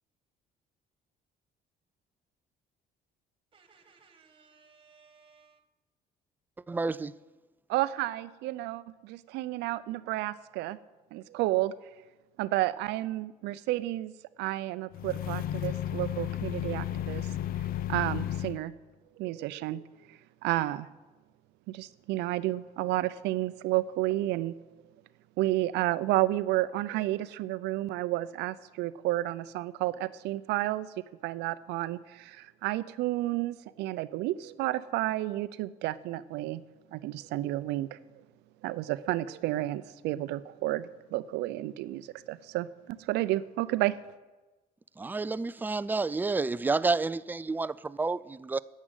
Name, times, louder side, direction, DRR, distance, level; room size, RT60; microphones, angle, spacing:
voice 1, 3.5-5.6, right 5 dB, 30° right, 1.6 m, -60 dB
voice 2, 6.7-7.1 45.0-48.6, right 3 dB, 10° right, 0.3 m, -30 dB
voice 3, 7.7-10.8 11.1-11.7 12.4-14.1 14.4-17.3 17.9-18.7 19.2-19.8 20.1-20.9 21.7-24.5 25.4-30.9 31.2-36.6 36.9-38.0 38.6-43.9, right 16 dB, 85° right, 0.5 m, -31 dB
sound 1, 14.9-18.6, left 11 dB, 60° left, 0.5 m, -33 dB
10.0 x 7.4 x 9.0 m
cardioid pair, 110°, 17 cm